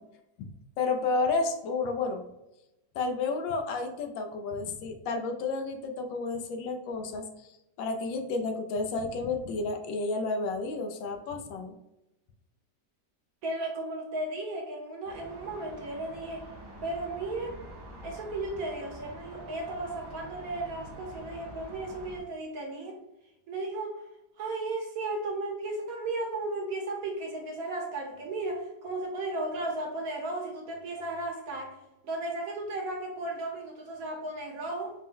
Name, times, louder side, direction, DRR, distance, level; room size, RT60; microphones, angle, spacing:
voice 1, 0.8-2.2 2.9-7.5 7.8-11.8, left 3 dB, 85° left, 5 dB, 1.3 m, -31 dB
voice 2, 13.4-16.5 16.8-17.5 18.0-23.0 23.5-24.0 24.4-31.7 32.0-34.9, right 2 dB, 65° right, 1 dB, 1.0 m, -35 dB
sound 1, 15.0-22.2, right 1 dB, 30° right, 0.4 m, -47 dB
4.3 x 2.1 x 3.6 m, 0.93 s
omnidirectional pair, 2.0 m